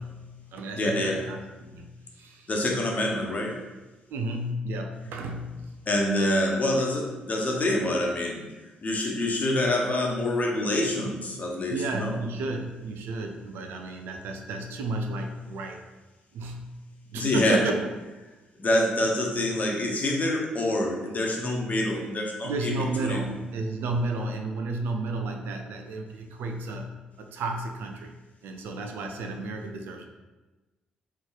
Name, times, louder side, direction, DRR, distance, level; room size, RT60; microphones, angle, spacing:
voice 1, 0.0-2.8 4.1-5.7 11.7-15.8 16.3-16.8 17.1-17.9 22.4-28.1 28.4-30.1, right 2 dB, 65° right, 3 dB, 0.5 m, -32 dB
voice 2, 0.8-1.2 2.5-3.6 5.9-8.5 8.8-12.1 17.1-17.6 18.6-22.7 23.1-23.2, left 1 dB, 40° left, 0 dB, 1.0 m, -26 dB
3.9 x 3.1 x 4.0 m, 1.2 s
figure-of-eight pair, 40°, 4 cm